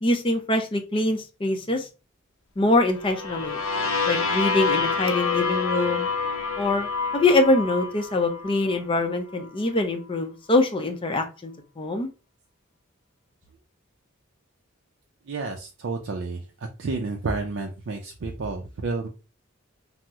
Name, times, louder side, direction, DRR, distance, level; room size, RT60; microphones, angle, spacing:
voice 1, 0.0-1.9 2.6-3.6 4.1-6.1 6.6-12.1, left 2 dB, 25° left, 5 dB, 0.5 m, -24 dB
sound 1, 2.9-8.8, left 5 dB, 85° left, 0.6 m, -27 dB
voice 2, 15.3-16.5 16.8-19.1, right 3 dB, 60° right, 2 dB, 0.4 m, -30 dB
2.8 x 2.0 x 3.4 m, 0.31 s
head